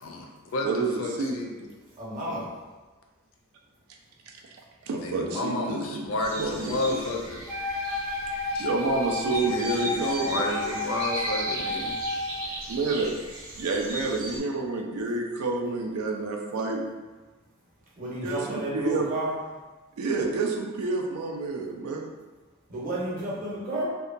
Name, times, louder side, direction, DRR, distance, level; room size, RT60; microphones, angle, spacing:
voice 1, 0.0-1.7 5.0-7.4 8.5-8.7 9.3-12.0, left 2 dB, 65° left, 1 dB, 0.4 m, -31 dB
voice 2, 0.6-1.4 4.3-4.4 4.8-7.0 8.6-10.4 12.7-13.1 13.6-16.8 18.2-19.1 20.0-22.1, right 3 dB, 90° right, 2 dB, 0.4 m, -29 dB
voice 3, 2.0-2.5 18.0-19.3 22.7-23.8, right 1 dB, 40° right, -6 dB, 0.8 m, -31 dB
sound 1, 6.2-14.4, right 1 dB, 70° right, 0.8 m, -37 dB
Wind instrument woodwind instrument, 7.5-12.5, left 2 dB, 10° right, 0.4 m, -31 dB
2.7 x 2.2 x 2.5 m, 1.3 s
head